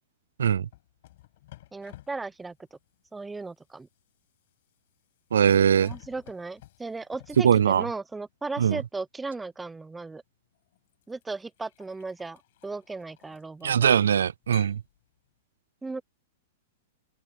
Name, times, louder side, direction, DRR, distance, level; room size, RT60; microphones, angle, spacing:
sound 1, 0.7-8.3 9.7-9.9 10.5-13.9 14.4-15.3, left 16 dB, 60° left, 6.3 m, -54 dB
voice 1, 1.7-2.8 3.1-3.9 5.8-10.2 11.1-13.9 15.8-16.0, right 3 dB, 10° right, 0.8 m, -36 dB
voice 2, 5.3-5.9 7.4-7.9 8.6-8.8 13.6-14.8, right 8 dB, 80° right, 0.4 m, -21 dB
open air
hypercardioid pair, 120°, 0 cm